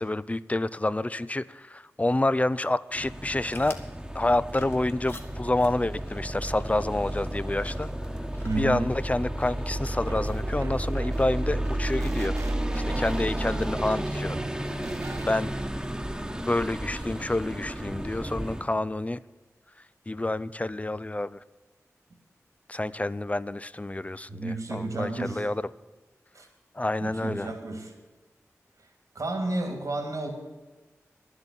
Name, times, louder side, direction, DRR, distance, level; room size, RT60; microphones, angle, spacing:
voice 1, 0.0-3.8 4.1-8.1 8.6-12.4 12.7-14.9 15.3-15.5 16.4-19.2 19.8-21.4 22.7-25.7 26.7-27.5, left 2 dB, 25° left, 17 dB, 0.5 m, -28 dB
sound 1, 2.9-18.7, right 1 dB, 15° right, 1.2 m, -32 dB
sound 2, 3.4-11.1, left 2 dB, 45° left, 1.9 m, -50 dB
voice 2, 8.4-8.8 24.3-25.5 26.3-26.5 27.0-27.9 29.1-30.3, right 2 dB, 75° right, 3 dB, 2.8 m, -31 dB
sound 3, 10.0-15.7, right 4 dB, 60° right, 0.6 m, -41 dB
11.5 x 8.0 x 9.0 m, 1.2 s
cardioid pair, 45°, 6 cm